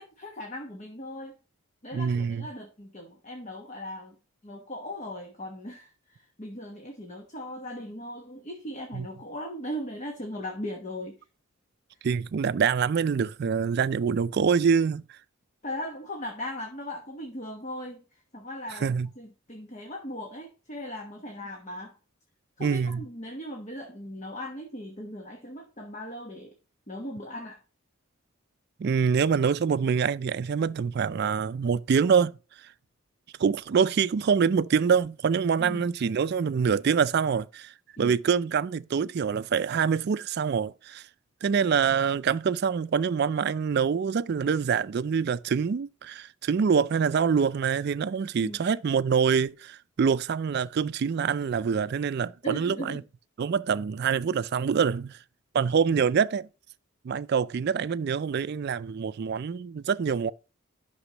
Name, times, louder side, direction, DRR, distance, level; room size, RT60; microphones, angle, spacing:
voice 1, 0.0-1.3 1.8-4.1 4.4-11.2 15.6-18.0 18.3-21.9 22.6-26.5 26.9-27.6 35.6-35.9 38.0-38.1 48.4-48.6 52.4-53.0, equal, 35° left, 1.1 m, -38 dB
voice 2, 1.9-2.5 8.9-9.1 12.0-15.0 18.8-19.1 22.6-23.0 28.8-32.3 33.4-37.7 38.0-41.0 41.4-53.0 53.4-55.2 55.5-56.5 57.0-60.3, right 6 dB, 50° right, 0.3 m, -25 dB
11.5 x 6.1 x 2.9 m
head